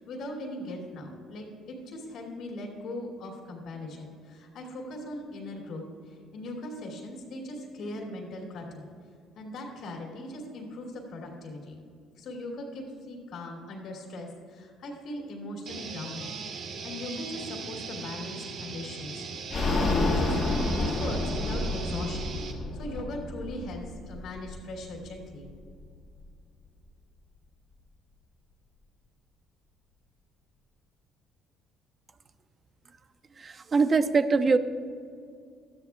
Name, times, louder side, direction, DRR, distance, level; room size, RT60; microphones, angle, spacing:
voice 1, 0.0-8.9 9.3-11.8 12.2-19.3 19.5-25.5, left 1 dB, 70° left, -1 dB, 2.7 m, -39 dB
sound 1, 15.7-22.5, right 5 dB, 65° right, 1.6 m, -39 dB
sound 2, 19.5-25.1 25.4-25.5 25.8-25.9, left 2 dB, 45° left, 1.7 m, -29 dB
voice 2, 33.4-34.6, right 4 dB, 35° right, 10 dB, 0.7 m, -23 dB
18.5 x 13.0 x 2.3 m, 2.3 s
cardioid pair, 95°, 0 cm